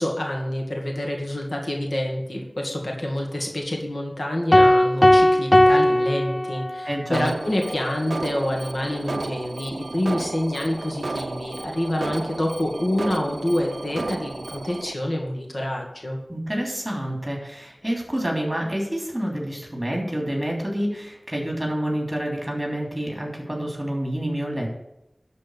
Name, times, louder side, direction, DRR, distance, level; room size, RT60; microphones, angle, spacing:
voice 1, 0.0-16.2, left 1 dB, 65° left, 0 dB, 2.2 m, -27 dB
sound 1, 4.5-7.0, left 1 dB, 30° left, 0.3 m, -17 dB
voice 2, 6.8-7.3 16.3-24.7, equal, 20° right, -1 dB, 3.6 m, -28 dB
Alarm, 7.1-14.9, right 3 dB, 85° right, 0.4 m, -33 dB
12.0 x 4.3 x 8.3 m, 0.87 s
wide cardioid pair, 50°, 0 cm